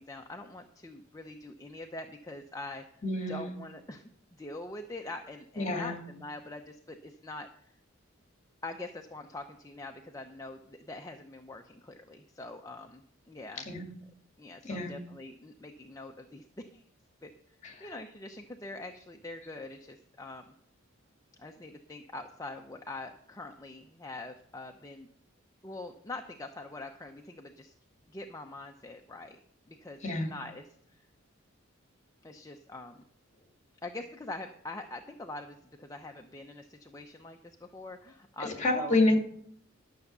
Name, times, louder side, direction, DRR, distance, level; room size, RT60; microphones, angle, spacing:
voice 1, 0.0-4.1 4.4-7.7 8.6-13.7 14.4-16.8 17.2-17.3 17.8-20.4 21.4-25.1 25.6-27.7 28.1-29.4 29.7-30.6 32.2-33.0 33.8-39.0, left 2 dB, 15° left, 4 dB, 0.7 m, -44 dB
voice 2, 3.0-3.4 5.6-6.0 13.6-13.9 14.6-15.0 17.6-17.9 30.0-30.3 38.4-39.2, left 2 dB, 35° left, 3 dB, 2.3 m, -28 dB
12.0 x 7.1 x 6.8 m, 0.65 s
head